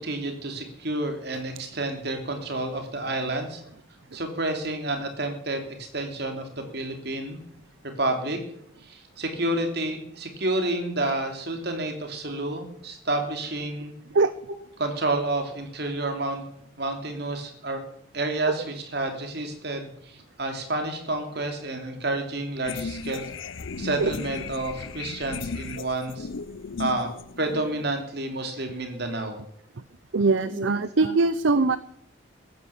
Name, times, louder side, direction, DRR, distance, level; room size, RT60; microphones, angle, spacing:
voice 1, 0.0-3.6 4.1-7.4 8.0-8.4 8.8-13.9 14.8-16.4 16.8-17.8 18.1-18.6 18.9-23.3 23.8-26.3 26.8-27.1 27.4-29.4 30.5-30.7 31.0-31.1, right 2 dB, 55° right, 5 dB, 3.1 m, -29 dB
sound 1, 22.6-28.0, left 4 dB, 75° left, 0.7 m, -36 dB
voice 2, 23.7-24.1 30.1-31.8, right 3 dB, 70° right, 15 dB, 0.6 m, -22 dB
15.5 x 11.0 x 7.2 m, 0.69 s
head